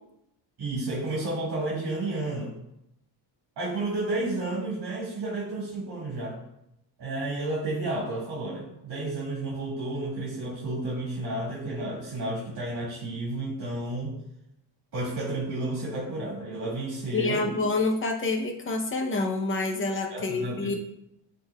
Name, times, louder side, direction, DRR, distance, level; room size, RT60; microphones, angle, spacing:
voice 1, 0.6-2.5 3.6-6.4 7.0-14.1 14.9-17.7 20.1-20.8, right 2 dB, 50° right, -7 dB, 2.1 m, -31 dB
voice 2, 17.1-20.7, left 3 dB, 25° left, 3 dB, 0.7 m, -27 dB
11.5 x 3.9 x 2.3 m, 0.83 s
cardioid pair, 170°, 45 cm